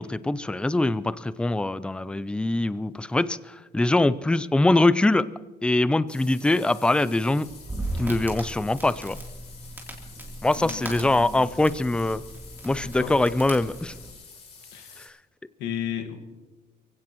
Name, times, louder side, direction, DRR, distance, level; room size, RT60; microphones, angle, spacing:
voice 1, 0.0-3.4 3.7-5.3 5.6-7.5 8.0-9.2 10.4-12.2 12.6-13.9, left 2 dB, 5° left, 16 dB, 0.4 m, -23 dB
sound 1, 6.1-15.1, left 5 dB, 40° left, 4.5 m, -48 dB
Crackle, 7.4-14.1, right 1 dB, 10° right, 3.2 m, -37 dB
voice 2, 10.5-11.5 12.7-13.1 14.7-14.9 15.6-16.2, left 9 dB, 90° left, 6 dB, 1.7 m, -34 dB
23.5 x 16.5 x 3.0 m, 1.2 s
cardioid pair, 110°, 17 cm